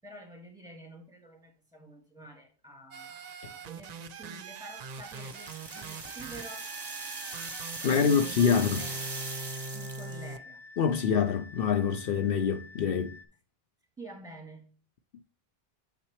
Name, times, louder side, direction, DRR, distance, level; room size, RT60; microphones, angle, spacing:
voice 1, 0.0-6.8 7.9-9.1 9.7-10.6 14.0-14.7, right 1 dB, 5° right, 1.8 m, -48 dB
sound 1, 2.9-10.4, right 4 dB, 55° right, 0.5 m, -42 dB
sound 2, 4.7-10.2, right 3 dB, 25° right, 0.9 m, -40 dB
sound 3, 5.7-13.3, left 3 dB, 35° left, 0.6 m, -50 dB
voice 2, 7.8-8.8 10.8-13.2, left 7 dB, 70° left, 0.8 m, -25 dB
6.8 x 5.9 x 3.1 m
omnidirectional pair, 1.0 m